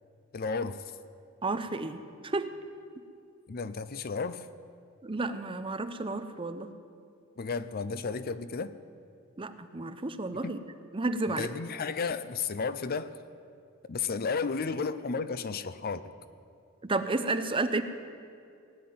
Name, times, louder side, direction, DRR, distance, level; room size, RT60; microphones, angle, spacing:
voice 1, 0.3-0.8 3.5-4.5 7.4-8.7 10.4-10.5 11.3-13.1 13.9-16.1, left 5 dB, 45° left, 13 dB, 0.5 m, -33 dB
voice 2, 1.4-2.5 5.0-6.7 9.4-10.6 10.9-11.5 16.8-17.8, right 3 dB, 25° right, 10 dB, 0.7 m, -31 dB
18.5 x 7.5 x 9.6 m, 2.4 s
head